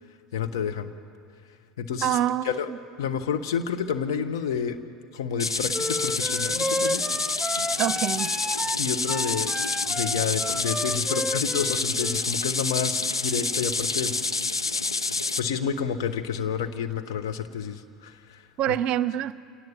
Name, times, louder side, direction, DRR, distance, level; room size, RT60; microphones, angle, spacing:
voice 1, 0.3-0.9 1.8-2.2 2.4-2.7 3.0-4.8 5.1-7.1 8.8-9.6 9.9-14.1 15.4-18.7, left 7 dB, 65° left, 8 dB, 1.3 m, -29 dB
voice 2, 2.0-2.5 7.8-8.3 18.6-19.3, right 12 dB, 45° right, 17 dB, 0.7 m, -25 dB
sound 1, 5.4-15.4, left 3 dB, 85° left, 0.7 m, -28 dB
sound 2, 5.7-12.2, equal, ahead, 0.5 m, -32 dB
27.5 x 18.5 x 7.3 m, 2.3 s
figure-of-eight pair, 70°, 2 cm